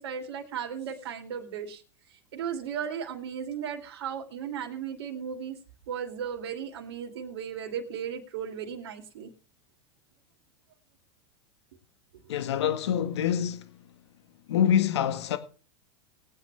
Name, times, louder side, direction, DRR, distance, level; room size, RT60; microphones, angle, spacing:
voice 1, 0.0-1.8 2.3-5.6 5.9-9.3, right 8 dB, 80° right, 2.8 m, -35 dB
voice 2, 12.3-13.7 14.5-15.4, left 9 dB, 85° left, 1.7 m, -25 dB
20.0 x 9.5 x 3.4 m
supercardioid pair, 120°, 14 cm